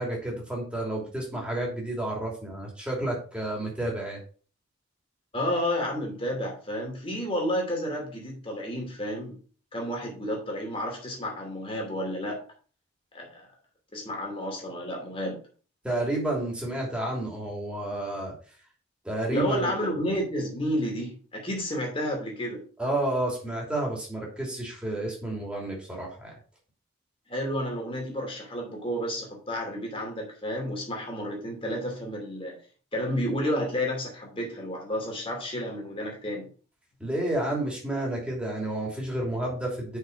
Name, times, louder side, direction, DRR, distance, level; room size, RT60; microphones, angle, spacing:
voice 1, 0.0-4.2 15.8-18.3 19.0-19.7 22.8-26.3 37.0-40.0, right 1 dB, 5° right, 2.8 m, -30 dB
voice 2, 5.3-9.4 9.7-12.4 13.1-13.5 13.9-15.4 19.3-22.7 27.3-32.6 32.9-36.5, equal, 25° left, 2.7 m, -31 dB
6.1 x 5.8 x 5.6 m
head